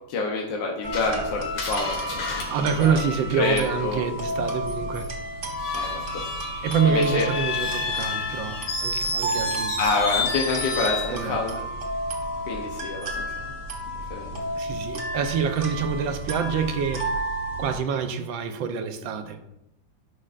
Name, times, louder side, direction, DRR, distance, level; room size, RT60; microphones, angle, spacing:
voice 1, 0.1-1.9 2.8-3.0 3.4-4.0 5.7-6.2 6.8-7.3 9.8-11.5 12.5-13.2 14.1-14.3, left 3 dB, 75° left, -1 dB, 1.6 m, -27 dB
sound 1, 0.8-17.8, right 1 dB, 40° right, 1.5 m, -32 dB
Screech, 0.9-3.8 5.5-11.2, left 4 dB, 90° left, 2.3 m, -31 dB
voice 2, 2.5-5.1 6.6-9.8 11.1-11.4 14.5-17.1 17.6-19.4, right 6 dB, 80° right, 8 dB, 1.5 m, -26 dB
11.0 x 6.4 x 2.5 m, 0.86 s
omnidirectional pair, 2.1 m